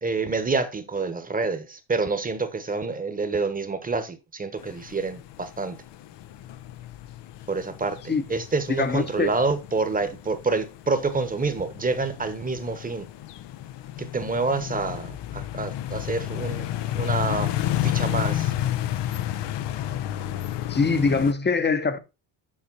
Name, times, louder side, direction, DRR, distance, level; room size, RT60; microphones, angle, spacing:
voice 1, 0.0-5.8 7.5-13.1 14.0-16.7 16.9-17.5 17.8-18.5, right 3 dB, 20° right, 1.2 m, -27 dB
sound 1, 4.6-21.3, left 12 dB, 70° left, 0.8 m, -31 dB
voice 2, 8.7-9.3 20.7-22.0, left 4 dB, 25° left, 0.9 m, -23 dB
7.5 x 5.5 x 4.1 m
cardioid pair, 105°, 44 cm